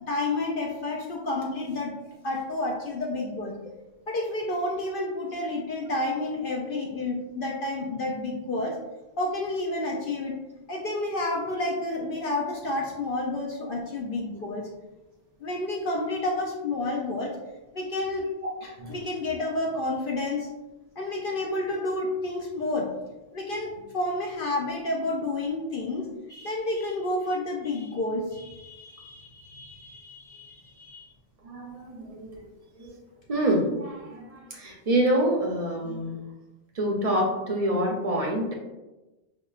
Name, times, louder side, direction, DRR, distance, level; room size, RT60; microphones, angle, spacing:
voice 1, 0.0-2.0 2.2-3.6 4.1-8.8 9.2-10.4 10.7-14.7 15.4-17.4 17.7-18.3 18.6-20.5 21.0-23.0 23.3-31.1, left 2 dB, 60° left, -1 dB, 0.7 m, -30 dB
voice 2, 31.4-32.4 32.8-32.9 33.3-36.2 36.8-38.5, right 1 dB, 45° right, -1 dB, 0.5 m, -26 dB
5.5 x 2.2 x 2.3 m, 1.1 s
omnidirectional pair, 1.1 m